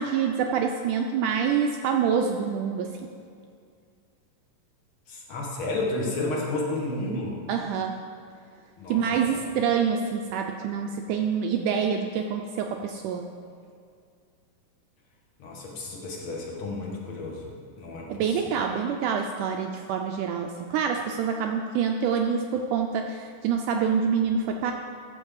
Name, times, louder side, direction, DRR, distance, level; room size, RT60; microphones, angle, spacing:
voice 1, 0.0-3.1 7.5-7.9 8.9-13.3 18.1-24.7, right 7 dB, 80° right, 3 dB, 1.9 m, -26 dB
voice 2, 5.1-7.4 8.8-9.4 15.4-17.5 17.8-18.6, left 2 dB, 50° left, -2 dB, 1.9 m, -32 dB
13.5 x 4.6 x 7.1 m, 2.2 s
omnidirectional pair, 4.0 m